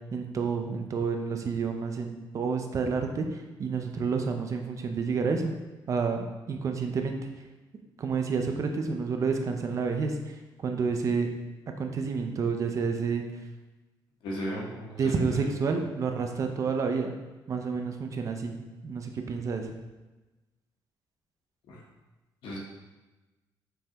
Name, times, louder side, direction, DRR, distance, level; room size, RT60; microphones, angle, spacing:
voice 1, 0.1-5.5 5.9-7.2 8.0-11.3 11.8-13.2 15.0-17.1 17.5-18.6 18.8-19.7, right 5 dB, 40° right, 4 dB, 0.5 m, -29 dB
voice 2, 14.2-15.5 21.7-21.8 22.4-22.6, equal, 85° left, -2 dB, 1.1 m, -36 dB
5.3 x 3.3 x 2.9 m, 1.1 s
cardioid pair, 140°, 8 cm